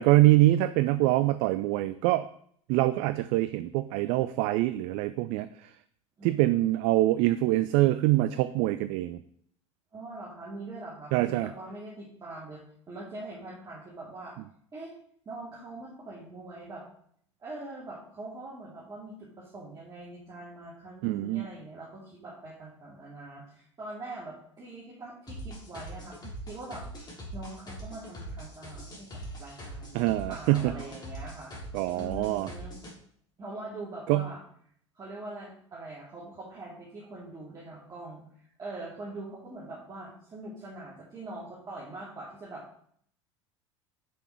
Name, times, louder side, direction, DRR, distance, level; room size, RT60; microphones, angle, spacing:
voice 1, 0.0-2.2 2.7-5.7 6.2-9.2 11.1-11.5 21.0-21.5 29.9-30.7 31.7-32.5 34.1-34.3, right 16 dB, 45° right, 13 dB, 0.4 m, -24 dB
voice 2, 6.2-6.9 9.9-12.6 12.9-14.3 14.7-14.9 15.3-16.8 17.4-26.8 27.3-29.1 29.4-31.5 31.9-32.8 33.4-34.4 34.9-38.2 38.6-42.8, right 2 dB, 25° right, -7 dB, 2.3 m, -43 dB
sound 1, 25.3-32.9, right 1 dB, 25° left, 3.1 m, -42 dB
6.6 x 6.2 x 4.8 m, 0.64 s
figure-of-eight pair, 70°, 16 cm